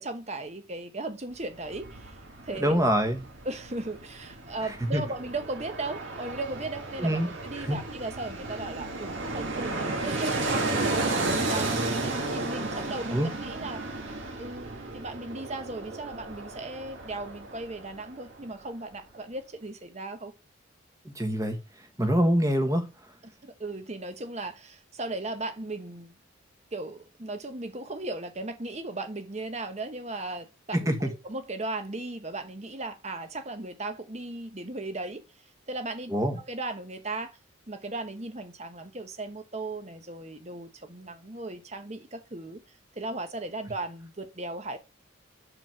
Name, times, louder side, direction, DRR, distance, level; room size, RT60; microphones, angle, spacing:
voice 1, 0.0-2.2 2.4-2.8 3.4-11.7 12.3-13.8 14.4-20.3 23.4-26.1 26.7-35.2 35.7-37.4 37.7-42.6 43.0-44.8, right 2 dB, 35° right, 1.0 m, -37 dB
Fixed-wing aircraft airplane, 1.3-18.3 18.6-18.7, right 2 dB, 65° right, 1.9 m, -33 dB
voice 2, 2.5-3.2 4.6-5.0 7.0-7.3 7.6-7.8 13.1-13.3 21.0-21.6 22.0-22.9 30.7-31.1 36.1-36.4, equal, 15° right, 1.2 m, -25 dB
5.9 x 5.0 x 6.2 m
head